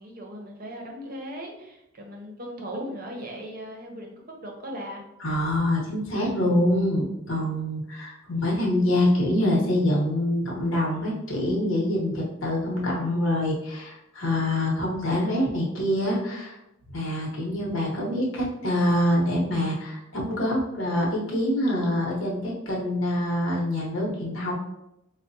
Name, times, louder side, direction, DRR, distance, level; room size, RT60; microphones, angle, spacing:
voice 1, 0.0-5.0, equal, 45° right, 0 dB, 0.7 m, -38 dB
voice 2, 5.2-16.6 16.9-24.5, left 1 dB, 65° left, -2 dB, 0.9 m, -25 dB
4.5 x 2.1 x 2.6 m, 0.86 s
head